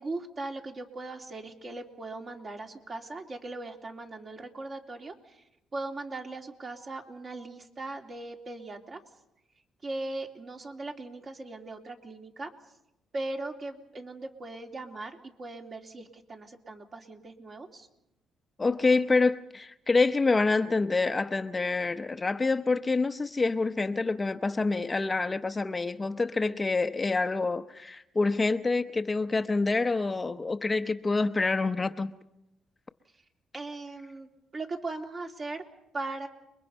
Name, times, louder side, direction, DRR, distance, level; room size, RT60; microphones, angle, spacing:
voice 1, 0.0-5.4 5.7-9.0 9.8-12.5 13.1-17.9 33.1-33.2 33.5-35.6 35.9-36.3, right 2 dB, 40° right, 3.1 m, -39 dB
voice 2, 18.6-32.1, left 3 dB, 25° left, 0.8 m, -27 dB
30.0 x 22.0 x 5.4 m
cardioid pair, 90°, 0 cm